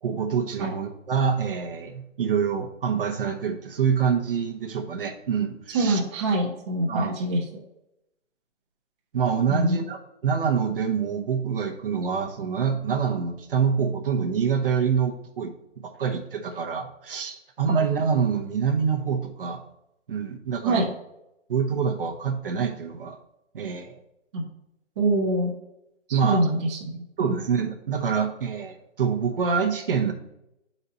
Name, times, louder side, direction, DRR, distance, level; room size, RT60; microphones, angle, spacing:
voice 1, 0.0-6.0 6.9-7.1 9.1-15.5 15.8-19.6 20.1-20.9 21.5-23.2 23.5-24.0 26.1-26.5 27.2-30.1, right 6 dB, 50° right, 4 dB, 0.9 m, -26 dB
voice 2, 5.7-7.4 9.5-9.8 20.6-20.9 24.3-24.4 25.0-25.5 26.1-27.4, right 2 dB, 25° right, 0 dB, 0.8 m, -25 dB
7.9 x 4.2 x 4.1 m, 0.85 s
hypercardioid pair, 155°, 36 cm